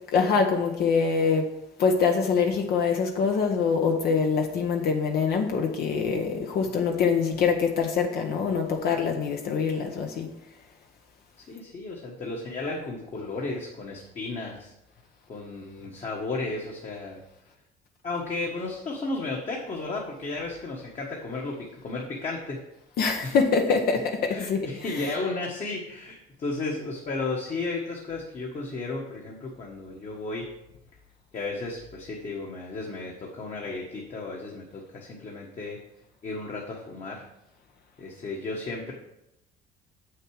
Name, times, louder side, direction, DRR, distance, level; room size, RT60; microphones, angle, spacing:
voice 1, 0.1-1.5 1.8-10.3 23.0-25.1, left 5 dB, 65° left, 3 dB, 1.1 m, -24 dB
voice 2, 11.4-14.7 15.3-17.2 18.0-22.6 23.2-23.4 23.9-24.0 24.3-30.5 31.3-35.8 36.2-37.2 38.0-38.9, left 3 dB, 40° left, -2 dB, 1.5 m, -34 dB
7.3 x 6.5 x 4.8 m, 0.85 s
cardioid pair, 110°, 17 cm